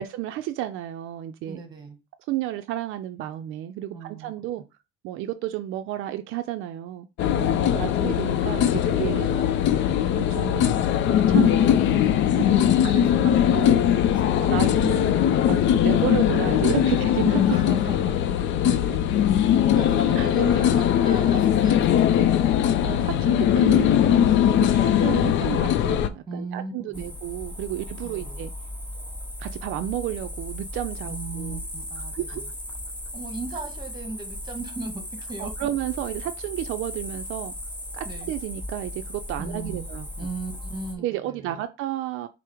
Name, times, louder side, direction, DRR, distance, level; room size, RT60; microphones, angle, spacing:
voice 1, 0.0-1.6 2.3-4.6 5.0-7.1 7.7-9.4 10.2-10.8 11.1-12.5 12.8-13.0 13.5-13.8 14.4-15.2 15.5-17.7 20.2-20.3 22.8-28.5 29.4-31.6 32.1-32.4 35.4-37.5 37.9-40.3 41.0-42.3, right 13 dB, 80° right, 0.4 m, -32 dB
voice 2, 1.5-2.0 3.9-4.3 7.3-8.0 12.4-15.2 17.1-18.2 18.6-19.0 19.6-22.5 24.6-24.9 26.3-27.0 28.0-28.4 31.0-32.5 33.1-35.0 35.3-35.7 38.0-38.3 39.4-39.9 40.2-41.6, right 3 dB, 20° right, 1.3 m, -38 dB
sound 1, 7.2-26.1, left 10 dB, 65° left, 0.5 m, -20 dB
sound 2, 26.9-41.0, left 1 dB, 5° left, 0.9 m, -37 dB
4.8 x 2.0 x 4.4 m
cardioid pair, 110°, 20 cm